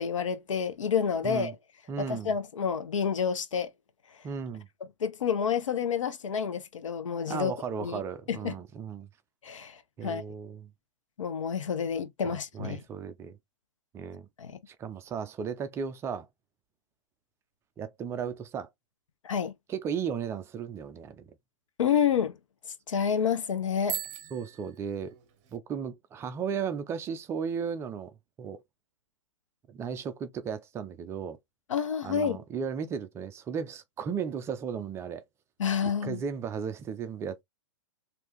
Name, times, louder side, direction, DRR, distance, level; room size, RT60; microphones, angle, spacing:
voice 1, 0.0-1.6 2.0-3.7 5.0-7.5 7.8-8.0 8.3-8.5 9.4-10.2 11.2-12.8 14.4-14.6 19.2-19.5 21.8-22.4 22.9-24.0 31.7-32.4 35.6-36.2, left 7 dB, 90° left, 0.7 m, -29 dB
voice 2, 1.9-2.3 4.2-4.7 7.3-9.1 10.0-10.7 12.2-13.4 13.9-14.3 14.7-16.3 17.8-18.7 19.7-21.3 24.3-25.2 25.5-28.1 28.4-28.6 29.7-31.4 32.0-35.2 36.0-37.4, right 7 dB, 15° right, 0.4 m, -35 dB
Bicycle bell, 23.8-25.6, right 13 dB, 35° right, 1.0 m, -39 dB
3.4 x 2.7 x 3.0 m
hypercardioid pair, 140°, 16 cm